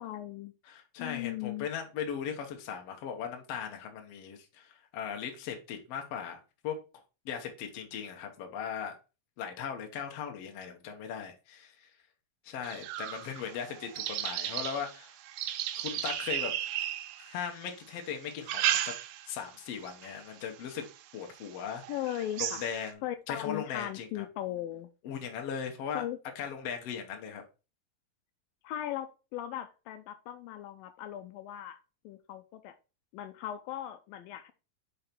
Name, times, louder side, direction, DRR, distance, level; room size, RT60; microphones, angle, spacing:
voice 1, 0.0-0.5 1.0-1.7 21.9-22.7 23.0-24.9 25.9-26.2 28.6-31.8 32.0-32.7 33.1-34.5, left 12 dB, 80° left, 9 dB, 2.2 m, -38 dB
voice 2, 0.6-6.8 7.2-9.0 9.4-11.9 12.4-15.2 15.8-16.5 17.2-18.9 19.3-20.8 21.1-21.8 22.4-23.0 23.3-24.2 25.0-26.0 26.3-27.4, left 7 dB, 65° left, 3 dB, 1.6 m, -38 dB
sound 1, 12.6-17.6 18.2-19.4 19.8-20.2 20.8-20.9 21.4-21.5 21.8-22.9, right 12 dB, 85° right, 2.5 m, -34 dB
5.2 x 4.8 x 4.3 m, 0.31 s
omnidirectional pair, 4.3 m